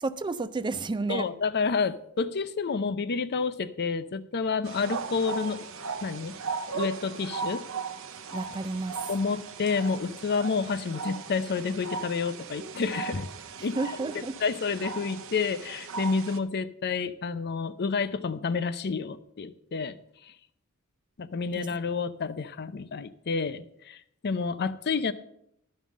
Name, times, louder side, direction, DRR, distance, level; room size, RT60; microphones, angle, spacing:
voice 1, 0.0-1.3 8.3-9.1 13.8-14.4 21.6-21.7, right 3 dB, 20° right, 0.4 m, -31 dB
voice 2, 1.1-5.7 6.0-6.4 6.7-7.6 9.1-13.3 13.6-13.8 14.1-20.0 20.2-20.3 21.2-25.1, left 5 dB, 50° left, 0.5 m, -29 dB
sound 1, 4.6-16.4, right 5 dB, 65° right, 0.8 m, -37 dB
12.5 x 5.4 x 7.4 m
head